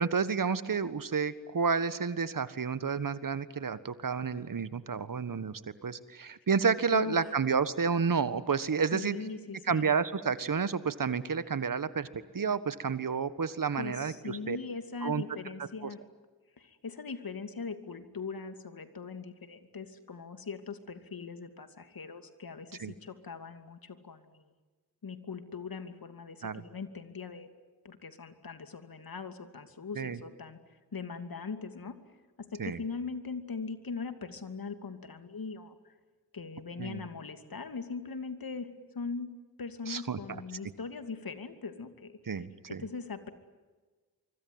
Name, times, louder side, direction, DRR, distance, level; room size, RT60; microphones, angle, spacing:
voice 1, 0.0-9.2 9.7-14.6 15.0-15.2 15.8-15.9 22.8-22.9 26.4-26.6 30.0-30.2 32.6-32.8 36.8-37.0 39.9-40.4 42.3-42.8, right 5 dB, 55° right, 14 dB, 1.6 m, -30 dB
voice 2, 8.9-9.9 13.8-16.0 16.6-24.5 25.0-27.5 27.8-30.6 30.9-32.0 32.4-35.9 36.3-39.3 39.6-42.2 42.8-43.3, left 5 dB, 65° left, 9 dB, 2.7 m, -40 dB
24.5 x 24.5 x 9.6 m, 1.3 s
cardioid pair, 50°, 38 cm